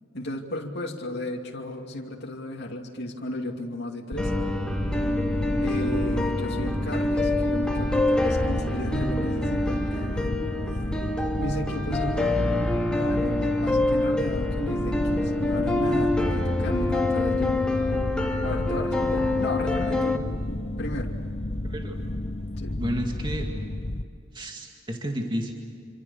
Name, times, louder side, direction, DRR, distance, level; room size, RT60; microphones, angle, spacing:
voice 1, 0.1-4.3 5.6-10.4 11.3-12.5 12.9-17.6 18.4-21.1 22.6-22.8, left 1 dB, 55° left, -1 dB, 2.6 m, -34 dB
sound 1, 4.1-24.0, left 1 dB, 30° left, 0.8 m, -31 dB
sound 2, 4.2-20.2, left 2 dB, 5° left, 1.9 m, -26 dB
voice 2, 21.6-22.0 22.8-23.5 24.3-25.5, equal, 25° right, 1 dB, 2.2 m, -31 dB
26.5 x 26.0 x 7.1 m, 2.5 s
head